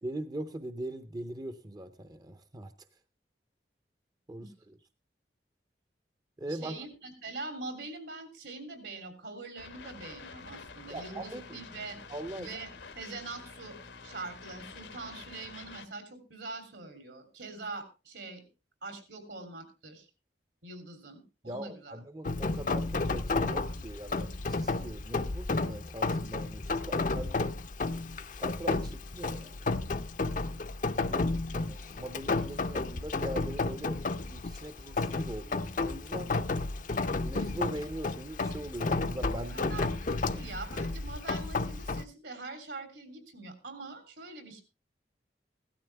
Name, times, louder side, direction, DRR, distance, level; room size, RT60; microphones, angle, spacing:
voice 1, 0.0-2.7 4.3-4.8 6.4-6.9 10.9-11.6 12.1-12.5 21.4-27.5 28.4-29.6 30.9-36.3 37.2-39.7 40.3-40.4, right 1 dB, 20° right, 11 dB, 0.6 m, -41 dB
voice 2, 6.5-12.0 12.4-12.7 12.9-13.8 14.0-18.5 18.8-20.1 20.6-22.0 39.5-39.9 40.2-44.6, right 3 dB, 75° right, 8 dB, 3.2 m, -43 dB
sound 1, 9.6-15.9, left 5 dB, 85° left, 1.4 m, -48 dB
Rain, 22.2-42.0, left 3 dB, 45° left, 0.6 m, -32 dB
16.0 x 12.5 x 3.3 m, 0.29 s
head